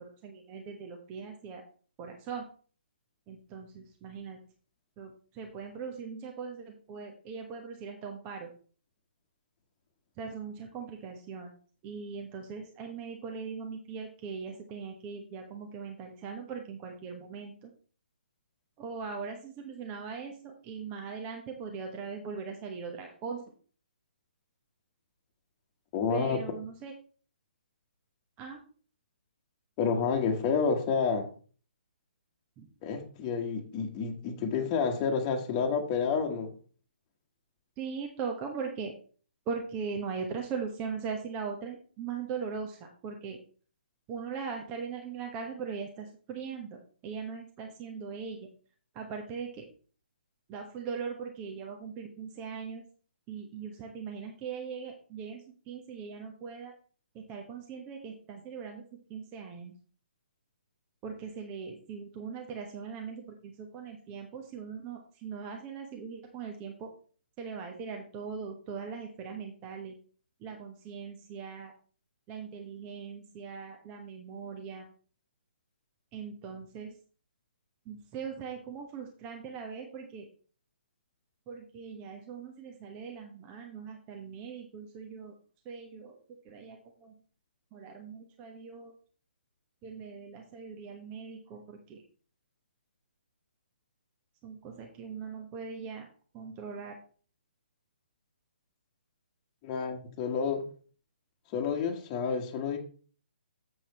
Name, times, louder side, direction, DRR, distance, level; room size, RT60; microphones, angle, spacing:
voice 1, 0.0-1.6 2.0-2.5 3.3-4.4 5.0-8.5 10.2-11.5 11.8-17.7 18.8-23.4 26.1-26.9 28.4-28.6 32.6-32.7 37.8-38.9 39.5-43.4 44.1-48.5 48.9-49.7 50.5-52.8 53.3-55.4 55.7-56.7 57.1-58.8 59.1-59.7 61.0-66.9 67.4-69.9 70.4-71.7 72.3-74.9 76.1-76.9 77.9-80.3 81.5-85.3 85.6-86.2 86.4-87.1 87.7-88.9 89.8-92.0 94.4-96.1 96.3-97.0, right 5 dB, 25° right, 2 dB, 1.2 m, -40 dB
voice 2, 25.9-26.4 29.8-31.2 32.8-36.5 99.6-100.6 101.5-102.8, left 5 dB, 25° left, 2 dB, 1.4 m, -29 dB
7.7 x 6.3 x 4.2 m, 0.41 s
figure-of-eight pair, 140°, 6 cm